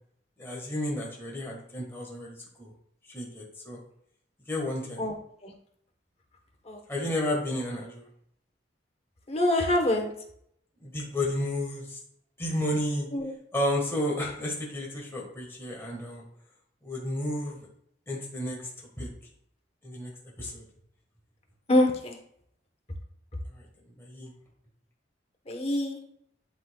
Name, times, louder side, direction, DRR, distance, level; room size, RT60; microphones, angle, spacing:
voice 1, 0.4-2.7 3.1-3.8 4.5-5.1 6.9-8.1 10.8-12.0 12.4-13.1 13.5-16.2 16.8-17.7 18.1-18.6 19.0-19.1 19.8-20.1 20.4-20.7 23.5-24.3, left 1 dB, 15° left, -3 dB, 1.3 m, -32 dB
voice 2, 9.3-10.1 13.1-13.3 21.7-22.2 25.5-26.0, left 1 dB, 35° left, 3 dB, 1.0 m, -25 dB
11.0 x 3.9 x 2.3 m, 0.68 s
head